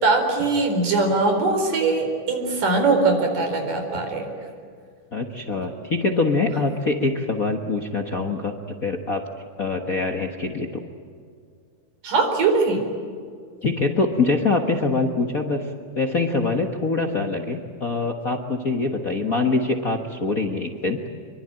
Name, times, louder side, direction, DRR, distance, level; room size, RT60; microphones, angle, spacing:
voice 1, 0.0-4.3 12.0-12.8, right 3 dB, 85° right, 4 dB, 5.8 m, -21 dB
voice 2, 5.1-8.5 8.8-9.2 9.6-10.8 13.6-15.7 15.9-21.0, left 3 dB, 45° left, 3 dB, 1.1 m, -24 dB
25.5 x 23.5 x 9.0 m, 2.2 s
omnidirectional pair, 3.6 m